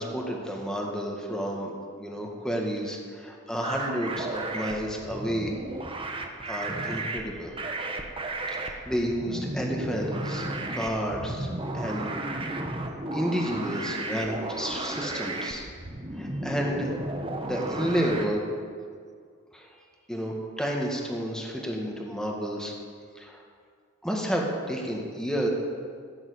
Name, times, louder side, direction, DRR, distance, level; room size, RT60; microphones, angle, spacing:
voice 1, 0.0-1.7 2.0-5.5 6.5-7.9 8.5-11.5 11.7-12.6 13.1-15.7 16.1-16.9 17.4-18.4 19.5-19.8 20.1-22.7 23.2-23.4 24.0-25.5, equal, 5° left, -1 dB, 1.9 m, -31 dB
sound 1, 3.6-18.3, right 2 dB, 25° right, 1.2 m, -34 dB
16.5 x 7.3 x 8.7 m, 2.1 s
head